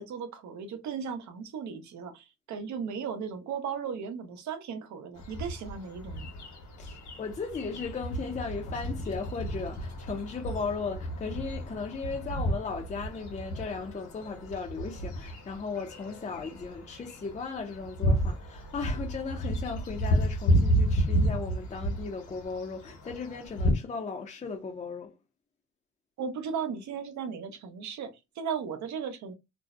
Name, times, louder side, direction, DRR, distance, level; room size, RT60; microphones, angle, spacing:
voice 1, 0.0-6.3 26.2-29.3, right 6 dB, 70° right, 0.7 m, -36 dB
sound 1, 5.2-23.7, equal, 70° left, 1.1 m, -32 dB
voice 2, 6.8-25.1, left 4 dB, 25° left, 0.4 m, -36 dB
2.5 x 2.0 x 2.4 m
cardioid pair, 90°, 30 cm